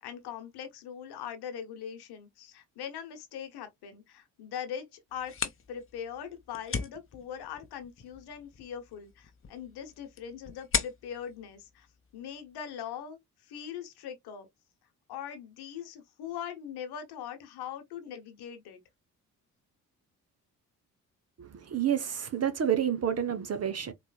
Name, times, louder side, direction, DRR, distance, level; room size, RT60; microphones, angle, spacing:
voice 1, 0.0-5.3 5.7-11.9 12.1-14.5 15.1-18.8, left 8 dB, 60° left, 1.1 m, -41 dB
sound 1, 5.1-12.6, left 6 dB, 30° left, 0.8 m, -39 dB
voice 2, 21.4-23.9, right 9 dB, 35° right, 0.9 m, -29 dB
4.2 x 3.0 x 2.3 m
figure-of-eight pair, 45°, 45 cm